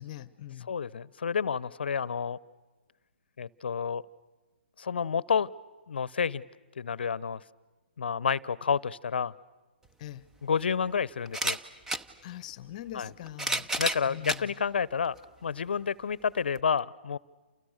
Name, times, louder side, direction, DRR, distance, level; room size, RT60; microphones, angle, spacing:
voice 1, 0.0-0.7 10.0-10.3 12.2-13.7 14.1-14.5, left 12 dB, 40° left, 0.9 m, -42 dB
voice 2, 0.7-2.4 3.4-4.0 4.8-5.5 5.9-6.4 6.8-7.4 8.0-9.3 10.4-11.6 12.9-13.1 13.8-15.2 15.4-17.2, left 6 dB, 65° left, 0.8 m, -29 dB
sound 1, 9.9-10.0 11.3-12.1 13.1-14.4 15.2-15.3 16.6-16.7, right 1 dB, 5° right, 0.8 m, -31 dB
29.5 x 29.0 x 6.6 m
figure-of-eight pair, 130°, 6 cm